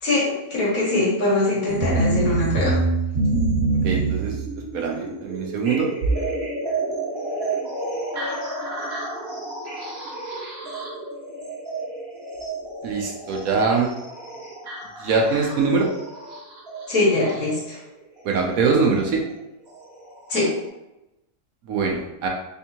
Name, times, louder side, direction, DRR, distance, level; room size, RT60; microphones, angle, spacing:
voice 1, 0.0-2.8 16.9-17.8 20.3-20.5, left 2 dB, 60° left, -5 dB, 1.7 m, -22 dB
sound 1, 1.7-17.6 18.8-18.9 19.7-19.8 20.4-20.5, right 3 dB, 45° right, 1.2 m, -28 dB
voice 2, 3.8-4.4 4.7-5.9 12.8-13.9 15.0-15.9 18.2-19.2 21.7-22.3, right 4 dB, 70° right, 0 dB, 1.0 m, -22 dB
3.5 x 3.4 x 2.8 m, 0.92 s
omnidirectional pair, 1.7 m